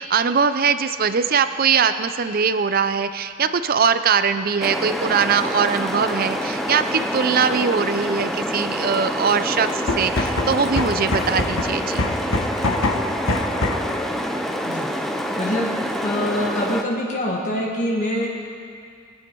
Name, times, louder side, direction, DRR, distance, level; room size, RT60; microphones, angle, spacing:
voice 1, 0.0-12.0, right 6 dB, 45° right, 11 dB, 0.5 m, -21 dB
sound 1, 4.6-16.8, equal, ahead, 0.6 m, -26 dB
sound 2, 9.7-14.0, left 2 dB, 70° left, 1.2 m, -25 dB
voice 2, 15.4-18.3, left 1 dB, 35° left, -2 dB, 1.6 m, -25 dB
22.0 x 9.0 x 4.6 m, 2.2 s
head